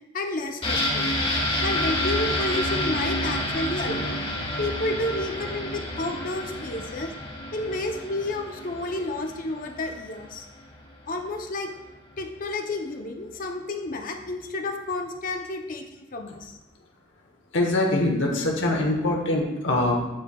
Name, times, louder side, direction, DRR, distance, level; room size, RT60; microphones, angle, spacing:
voice 1, 0.1-1.1 1.6-4.2 4.6-7.1 7.5-10.5 11.1-11.7 12.2-16.5, left 2 dB, 50° left, 4 dB, 0.7 m, -31 dB
sound 1, 0.6-10.2 10.6-10.7, left 1 dB, 30° left, 1.5 m, -29 dB
voice 2, 17.5-20.0, left 1 dB, 80° left, 1 dB, 1.0 m, -23 dB
9.9 x 4.5 x 2.3 m, 1.0 s
head